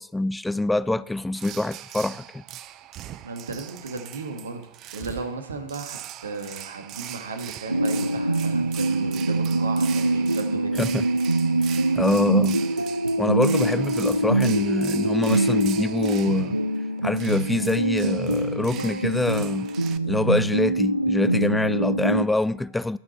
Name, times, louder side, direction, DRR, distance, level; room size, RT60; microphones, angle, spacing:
voice 1, 0.0-2.4 10.8-11.0 11.7-12.6 13.2-16.6 17.0-19.7 20.1-23.0, left 2 dB, 5° left, 0.3 m, -25 dB
sound 1, 1.3-20.0, right 12 dB, 35° right, 0.6 m, -41 dB
voice 2, 3.2-10.9, right 4 dB, 70° right, 1.9 m, -35 dB
sound 2, 7.7-22.2, right 1 dB, 85° right, 0.5 m, -24 dB
19.0 x 6.4 x 4.4 m
figure-of-eight pair, 90°, 0 cm